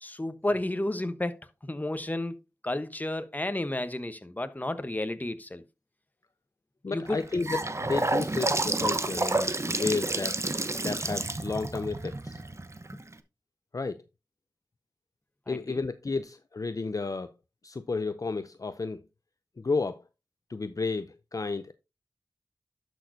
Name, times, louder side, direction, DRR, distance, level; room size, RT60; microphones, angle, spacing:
voice 1, 0.0-2.3 2.6-5.6 6.9-7.2 12.9-13.0 15.5-15.8, left 1 dB, 20° left, 1.0 m, -32 dB
voice 2, 6.8-10.4 10.7-12.4 13.7-14.0 15.5-17.3 17.6-19.0 19.6-20.0 20.5-21.7, left 4 dB, 45° left, 0.5 m, -32 dB
Gurgling / Sink (filling or washing) / Bathtub (filling or washing), 7.1-13.1, right 2 dB, 35° right, 0.9 m, -30 dB
11.0 x 6.2 x 2.7 m
cardioid pair, 45°, 8 cm